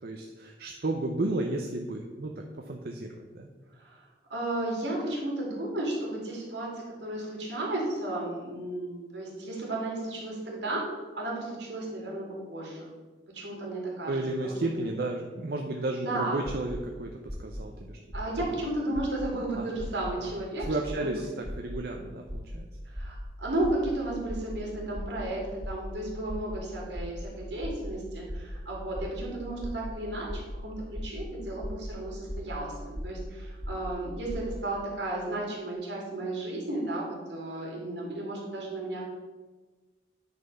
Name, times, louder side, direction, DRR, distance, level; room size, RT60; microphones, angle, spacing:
voice 1, 0.0-2.3 2.7-3.5 14.1-18.0 19.5-19.7 20.2-20.3 20.7-22.7, right 2 dB, 55° right, 2 dB, 0.6 m, -33 dB
voice 2, 3.7-4.0 4.3-12.9 13.3-14.8 16.0-16.4 18.1-21.1 22.9-39.1, right 1 dB, 75° right, -3 dB, 2.6 m, -34 dB
sound 1, 16.5-16.8 17.3-17.6 18.1-18.5 18.9-19.3 19.8-20.1 20.6-21.0 21.5-21.8 22.3-22.6 23.0-23.3 23.6-23.9 24.3-24.6 25.0-25.3 25.6-25.9 26.3-26.6 27.0-27.3 27.6-27.9 28.3-28.6 29.0-29.3 29.6-29.9 30.3-30.6 31.0-31.3 31.6-31.9 32.3-32.6 32.9-33.3 33.6-33.9 34.3-34.5, equal, 15° right, 1.3 m, -36 dB
9.5 x 4.3 x 5.5 m, 1.3 s
head